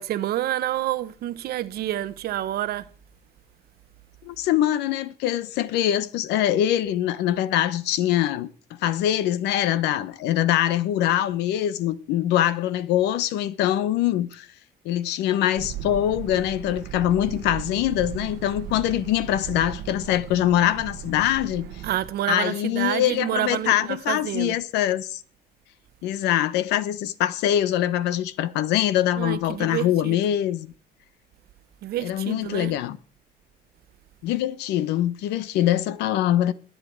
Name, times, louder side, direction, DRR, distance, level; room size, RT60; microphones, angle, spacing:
voice 1, 0.0-2.9 21.8-24.6 29.2-30.2 31.8-32.7, right 13 dB, 70° right, 0.9 m, -28 dB
voice 2, 4.2-8.5 8.8-14.5 14.8-21.7 22.3-25.2 26.0-30.7 32.0-33.0 34.2-36.5, left 12 dB, 85° left, 1.0 m, -23 dB
sound 1, 15.5-22.1, right 11 dB, 85° right, 1.2 m, -37 dB
21.0 x 7.8 x 4.6 m
cardioid pair, 110°, 17 cm